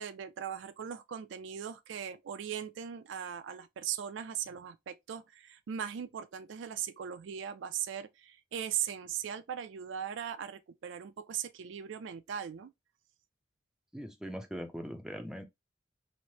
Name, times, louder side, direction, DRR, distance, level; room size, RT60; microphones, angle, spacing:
voice 1, 0.0-12.7, right 9 dB, 70° right, 0.4 m, -39 dB
voice 2, 13.9-15.4, equal, 5° right, 0.4 m, -41 dB
3.1 x 2.0 x 2.7 m
head